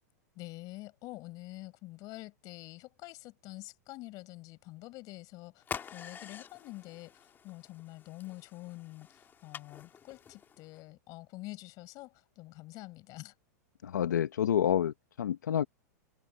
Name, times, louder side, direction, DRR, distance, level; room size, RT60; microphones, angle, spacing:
voice 1, 0.4-5.6 5.9-13.3, left 20 dB, 40° left, 5.5 m, -47 dB
sound 1, 5.6-10.8, left 7 dB, 20° left, 2.1 m, -47 dB
voice 2, 13.8-15.6, left 9 dB, 90° left, 1.1 m, -28 dB
hypercardioid pair, 130°, 9 cm